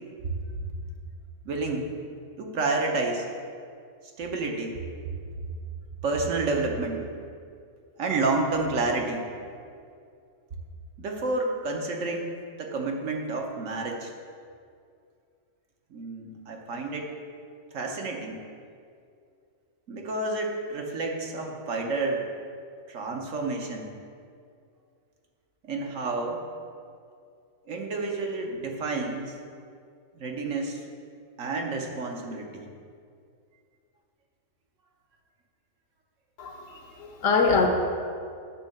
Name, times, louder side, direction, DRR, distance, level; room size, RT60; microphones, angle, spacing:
voice 1, 1.4-1.9 2.4-3.3 4.2-4.8 6.0-7.0 8.0-9.3 11.0-14.1 15.9-17.1 17.7-18.4 19.9-22.2 22.9-23.9 25.6-26.4 27.7-29.3 30.2-30.8 31.4-32.7, right 3 dB, 65° right, 1 dB, 1.2 m, -30 dB
voice 2, 36.4-37.7, left 4 dB, 70° left, 3 dB, 1.2 m, -24 dB
8.3 x 3.7 x 6.4 m, 2.3 s
omnidirectional pair, 1.4 m